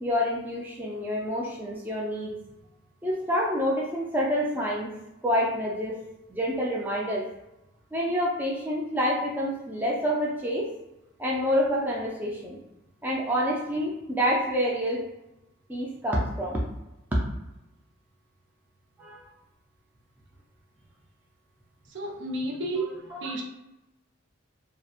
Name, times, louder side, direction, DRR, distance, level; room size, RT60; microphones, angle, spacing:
voice 1, 0.0-2.3 3.0-4.9 5.2-7.3 7.9-10.7 11.2-12.6 13.0-15.1 15.7-16.6 17.1-17.2 19.0-19.3 23.1-23.2, equal, 10° right, 0.3 m, -27 dB
voice 2, 21.9-23.4, right 2 dB, 65° right, 0.5 m, -32 dB
2.9 x 2.0 x 2.3 m
head